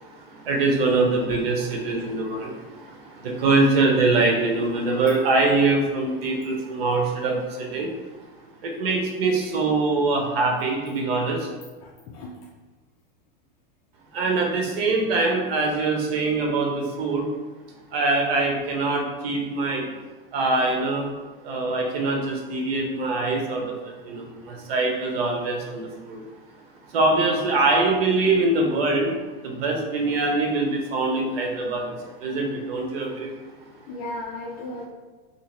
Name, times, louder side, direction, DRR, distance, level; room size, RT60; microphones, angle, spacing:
voice 1, 0.4-7.9 8.6-11.5 14.1-17.3 17.9-19.9 20.3-21.1 21.4-23.8 24.0-26.2 26.9-29.1 29.4-31.9 32.2-33.3, right 3 dB, 80° right, 1 dB, 0.9 m, -23 dB
voice 2, 11.8-12.4 24.5-24.6 33.9-34.9, left 2 dB, 40° left, -2 dB, 0.4 m, -35 dB
2.8 x 2.8 x 3.0 m, 1.3 s
supercardioid pair, 135°, 30 cm